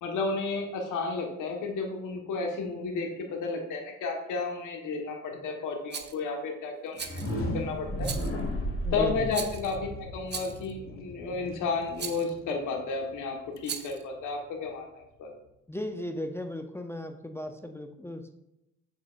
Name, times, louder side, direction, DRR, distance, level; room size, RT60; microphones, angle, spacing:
voice 1, 0.0-8.1 8.9-15.3, left 4 dB, 85° left, 2 dB, 1.5 m, -32 dB
Rattle, 5.9-6.2 7.0-7.4 8.0-8.4 9.3-9.8 10.3-10.7 12.0-12.3 13.6-14.0, right 7 dB, 35° right, 0.6 m, -38 dB
sound 1, 6.9-12.8, equal, 45° left, 1.6 m, -35 dB
voice 2, 8.8-9.3 15.7-18.3, left 1 dB, 10° left, 5 dB, 0.6 m, -36 dB
7.6 x 7.1 x 2.5 m, 0.87 s
cardioid pair, 90°, 30 cm